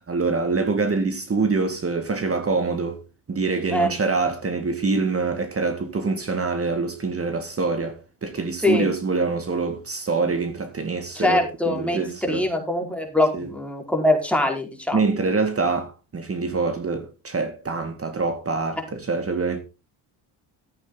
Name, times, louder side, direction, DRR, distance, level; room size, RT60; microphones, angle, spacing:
voice 1, 0.1-3.0 3.3-12.4 13.3-13.5 14.9-19.6, right 4 dB, 30° right, 2.1 m, -25 dB
voice 2, 11.1-15.0, left 1 dB, 5° left, 4.7 m, -23 dB
14.0 x 8.4 x 4.0 m
supercardioid pair, 75°, 45 cm